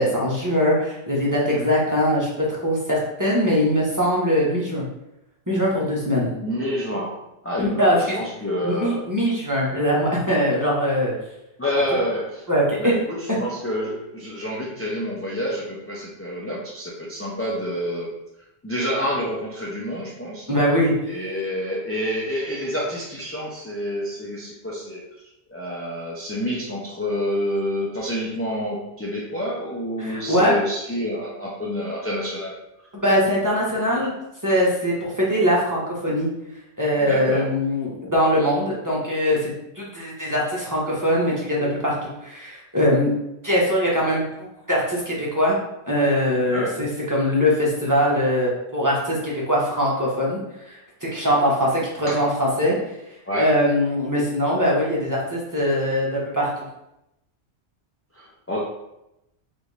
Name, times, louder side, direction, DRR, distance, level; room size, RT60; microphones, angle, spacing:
voice 1, 0.0-4.8 5.5-6.3 7.6-8.1 8.6-11.1 12.5-12.9 20.5-20.9 30.0-30.6 32.9-34.1 34.4-36.3 36.8-43.1 43.4-45.6 45.9-50.4 50.7-52.8 53.4-56.5, equal, 20° right, -5 dB, 1.0 m, -22 dB
voice 2, 6.4-9.0 11.6-12.4 12.8-18.1 18.6-20.5 21.1-25.0 25.5-32.6 37.0-37.5 46.3-46.8 52.1-52.2 53.3-53.5 58.1-58.6, equal, 15° left, -5 dB, 0.6 m, -28 dB
5.2 x 2.7 x 3.3 m, 0.88 s
omnidirectional pair, 1.2 m